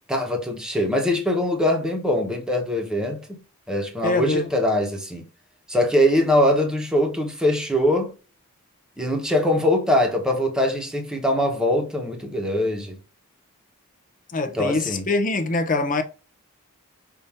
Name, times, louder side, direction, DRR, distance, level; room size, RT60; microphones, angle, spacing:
voice 1, 0.1-3.4 3.7-5.2 5.7-8.1 9.0-13.0 14.5-15.1, left 1 dB, 5° right, 1.0 m, -22 dB
voice 2, 4.0-4.5 14.3-16.0, left 3 dB, 35° left, 0.6 m, -23 dB
5.7 x 2.6 x 3.6 m
head